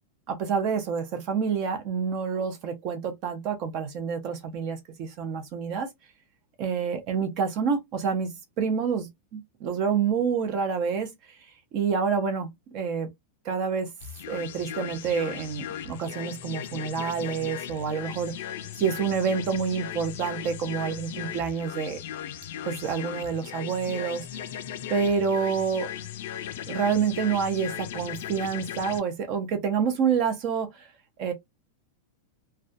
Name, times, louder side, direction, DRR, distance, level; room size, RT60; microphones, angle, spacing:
voice 1, 0.3-5.9 6.6-11.4 11.7-13.1 13.4-13.9 14.3-22.0 22.6-24.5 24.9-25.9 26.7-30.9 31.2-31.3, right 6 dB, 40° right, 0.5 m, -28 dB
sound 1, 14.0-29.0, left 10 dB, 65° left, 0.4 m, -37 dB
2.2 x 2.1 x 2.5 m
supercardioid pair, 155°, 0 cm